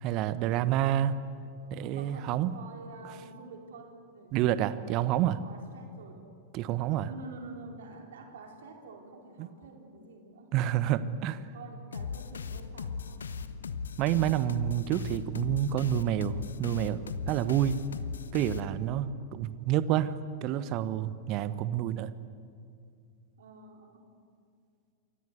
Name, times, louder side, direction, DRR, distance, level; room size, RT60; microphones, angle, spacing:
voice 1, 0.0-1.2 1.7-2.5 4.3-5.4 6.5-7.1 10.5-11.4 14.0-17.8 18.3-20.1 20.4-22.1, right 11 dB, 40° right, 14 dB, 1.2 m, -28 dB
voice 2, 1.9-4.3 4.6-6.3 7.0-10.5 11.4-13.3 23.4-24.1, right 3 dB, 60° right, 2 dB, 4.5 m, -48 dB
sound 1, 11.9-19.1, left 5 dB, 70° left, 1.0 m, -38 dB
28.0 x 24.0 x 8.2 m, 2.3 s
figure-of-eight pair, 90°, 0 cm